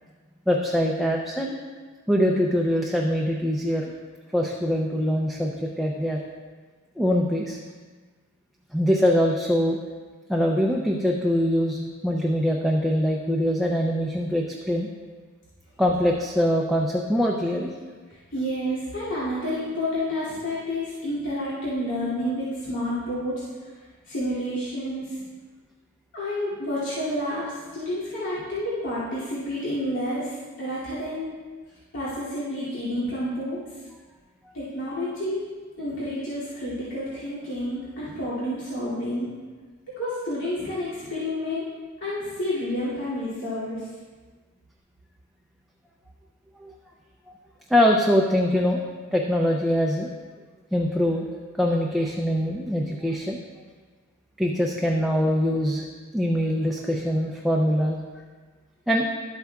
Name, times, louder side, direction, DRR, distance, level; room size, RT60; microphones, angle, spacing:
voice 1, 0.5-1.5 2.1-3.8 4.3-6.2 7.0-7.6 8.7-9.8 10.3-14.9 15.8-17.7 46.6-46.7 47.7-48.8 49.1-50.1 50.7-51.2 51.6-53.4 54.4-55.8 56.1-58.0 58.9-59.0, equal, ahead, -2 dB, 0.5 m, -23 dB
voice 2, 18.3-23.4 24.1-25.1 26.1-31.3 31.9-33.6 34.5-39.3 40.0-41.6 42.0-43.8, left 1 dB, 65° left, -11 dB, 2.5 m, -29 dB
12.0 x 8.1 x 2.3 m, 1.4 s
head